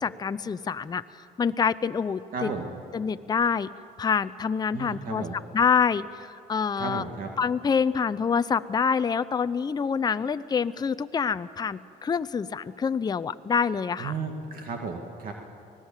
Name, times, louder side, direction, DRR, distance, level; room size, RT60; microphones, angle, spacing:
voice 1, 0.0-1.0 1.4-2.5 2.9-3.7 4.0-5.2 5.5-7.0 7.4-14.1, left 6 dB, 25° left, 13 dB, 0.6 m, -26 dB
voice 2, 2.3-2.7 4.7-5.4 6.8-7.3 14.0-15.3, right 4 dB, 55° right, 2 dB, 2.2 m, -34 dB
25.0 x 18.0 x 7.4 m, 2.5 s
cardioid pair, 110°, 17 cm